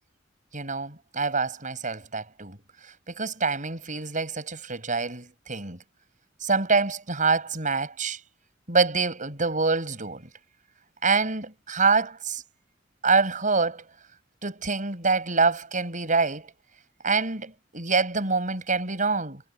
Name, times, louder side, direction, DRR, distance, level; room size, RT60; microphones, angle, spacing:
voice 1, 0.5-2.6 3.1-5.8 6.4-8.2 8.7-10.3 11.0-12.4 13.0-13.8 14.4-16.4 17.0-19.4, right 4 dB, 45° right, 7.6 m, -25 dB
head